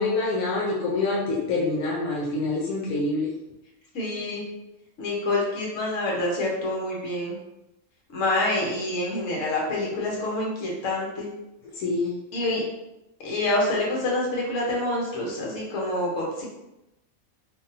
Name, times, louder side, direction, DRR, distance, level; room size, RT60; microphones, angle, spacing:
voice 1, 0.0-3.3 11.8-12.1, left 3 dB, 80° left, -4 dB, 1.1 m, -26 dB
voice 2, 3.9-4.4 5.0-7.4 8.1-11.3 12.3-12.6 13.2-16.4, left 2 dB, 65° left, -3 dB, 1.2 m, -27 dB
3.3 x 2.3 x 2.6 m, 0.93 s
omnidirectional pair, 1.5 m